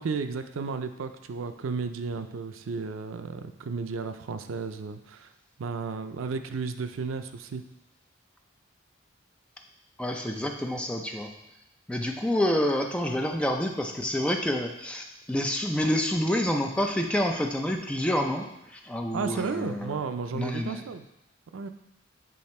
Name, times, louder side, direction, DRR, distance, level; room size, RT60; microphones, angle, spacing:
voice 1, 0.0-5.3 5.6-7.6 19.1-21.1 21.5-21.7, right 4 dB, 85° right, 9 dB, 0.4 m, -33 dB
voice 2, 10.0-11.3 11.9-18.5 18.8-20.0 20.3-20.8, left 1 dB, 5° left, 2 dB, 0.4 m, -28 dB
7.6 x 3.5 x 4.3 m, 0.86 s
head